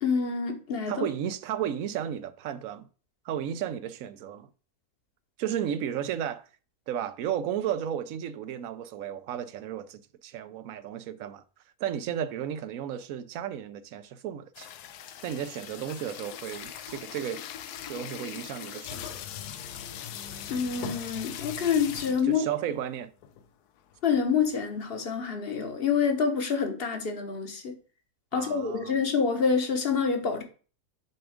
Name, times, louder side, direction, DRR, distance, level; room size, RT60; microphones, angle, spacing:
voice 1, 0.0-1.1 20.5-22.4 24.0-27.7 28.3-30.4, left 6 dB, 45° left, 1.0 m, -27 dB
voice 2, 0.9-2.9 3.2-4.5 5.4-6.4 6.9-11.4 11.8-14.7 15.2-17.4 17.9-19.2 22.2-23.1 28.3-29.0, right 10 dB, 70° right, 0.9 m, -33 dB
sound 1, 14.5-22.4 22.9-23.0 23.2-23.5 23.9-25.2, left 9 dB, 90° left, 1.2 m, -40 dB
7.0 x 3.6 x 4.9 m
omnidirectional pair, 1.6 m